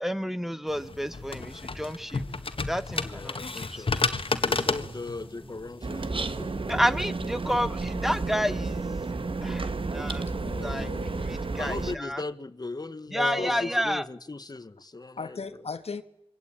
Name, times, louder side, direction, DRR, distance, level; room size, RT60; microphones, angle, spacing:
voice 1, 0.0-2.2 2.7-3.8 6.7-8.8 9.4-9.7 9.9-10.2 10.6-10.9 11.3-12.2 13.1-14.0, equal, 5° right, 1.1 m, -30 dB
sound 1, 0.7-6.1, left 3 dB, 60° left, 1.6 m, -31 dB
voice 2, 3.0-6.8 11.5-15.4, left 3 dB, 40° left, 1.3 m, -38 dB
sound 2, 4.5-8.1 8.6-8.8, right 1 dB, 20° right, 7.6 m, -48 dB
sound 3, 5.8-12.0, right 3 dB, 60° right, 1.4 m, -32 dB
voice 3, 10.1-11.4 13.1-13.6 15.2-16.0, left 4 dB, 80° left, 1.6 m, -37 dB
26.5 x 24.0 x 8.8 m
wide cardioid pair, 80°, 10 cm